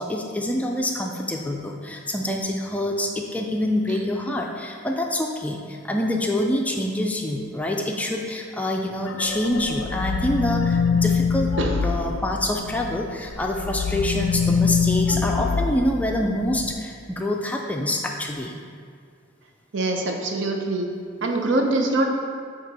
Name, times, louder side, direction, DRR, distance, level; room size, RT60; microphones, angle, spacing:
voice 1, 0.0-11.5 11.8-18.5, left 1 dB, 10° left, 1 dB, 0.3 m, -26 dB
sound 1, 9.1-13.0 13.3-16.7, left 5 dB, 80° left, 0.3 m, -24 dB
voice 2, 19.7-20.9 21.2-22.1, right 2 dB, 70° right, 2 dB, 0.7 m, -23 dB
7.5 x 2.9 x 4.7 m, 2.2 s
head